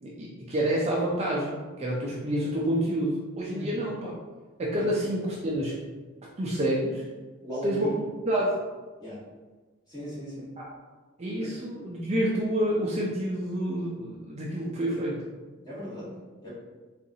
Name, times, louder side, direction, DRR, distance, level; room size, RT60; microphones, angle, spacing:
voice 1, 0.0-4.1 4.6-5.8 6.4-7.1 7.6-8.6 10.6-10.7 11.2-15.3, right 1 dB, 30° right, -4 dB, 0.4 m, -28 dB
voice 2, 7.4-7.9 9.0-9.2 9.9-10.5 11.4-11.5 15.6-16.5, equal, 20° left, -10 dB, 1.4 m, -37 dB
3.8 x 2.5 x 2.7 m, 1.3 s
head